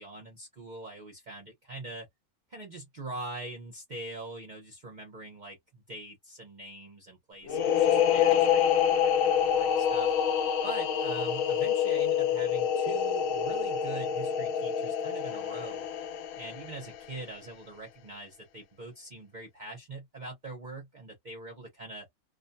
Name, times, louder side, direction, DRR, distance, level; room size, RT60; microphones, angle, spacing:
voice 1, 0.0-2.1 2.5-10.1 10.6-15.9 16.3-22.1, right 2 dB, 40° right, 0.7 m, -43 dB
sound 1, 7.5-17.0, left 8 dB, 70° left, 0.9 m, -27 dB
2.5 x 2.1 x 2.5 m
omnidirectional pair, 1.5 m